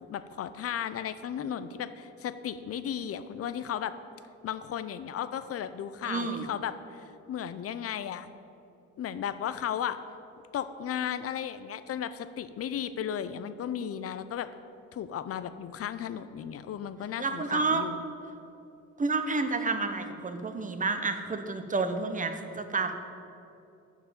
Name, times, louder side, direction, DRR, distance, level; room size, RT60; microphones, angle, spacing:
voice 1, 0.1-3.9 4.4-8.3 9.0-10.0 10.5-14.5 14.9-18.0, left 9 dB, 50° left, 13 dB, 0.5 m, -35 dB
voice 2, 6.0-6.5 17.2-17.8 19.0-22.9, right 3 dB, 25° right, 7 dB, 0.8 m, -30 dB
7.1 x 6.0 x 7.5 m, 2.7 s
cardioid pair, 90°, 30 cm